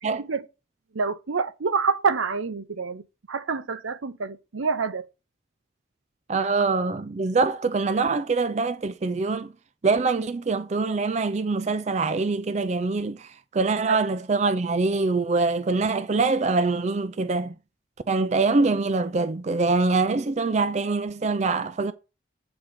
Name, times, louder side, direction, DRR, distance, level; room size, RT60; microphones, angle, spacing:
voice 1, 0.0-0.4 0.9-3.0 3.3-5.1 13.9-14.0 18.2-18.4, right 5 dB, 80° right, 0.7 m, -27 dB
voice 2, 6.3-9.5 9.8-17.5 18.1-21.9, right 3 dB, 35° right, 0.4 m, -24 dB
8.0 x 3.9 x 6.7 m
head